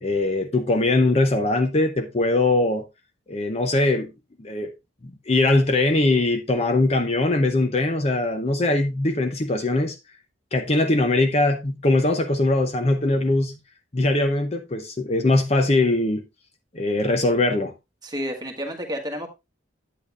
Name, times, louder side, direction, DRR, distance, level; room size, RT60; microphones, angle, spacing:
voice 1, 0.0-2.9 3.3-4.1 4.4-4.7 5.0-10.0 10.5-13.6 13.9-16.2 16.7-17.7, left 2 dB, 35° left, 0.6 m, -21 dB
voice 2, 18.0-19.3, equal, 20° right, 1.3 m, -30 dB
8.7 x 8.4 x 2.4 m
head